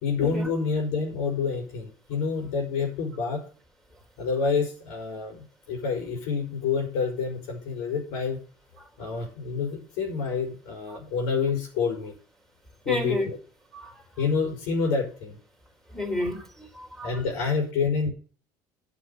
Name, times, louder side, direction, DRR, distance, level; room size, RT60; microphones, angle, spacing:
voice 1, 0.0-3.4 4.2-8.4 9.0-12.1 12.8-13.4 14.2-15.4 17.0-18.1, left 5 dB, 85° left, 4.7 m, -28 dB
voice 2, 12.9-13.3 13.7-13.9 15.9-17.1, left 1 dB, 5° left, 3.7 m, -31 dB
9.5 x 6.6 x 6.8 m
supercardioid pair, 110°, 9 cm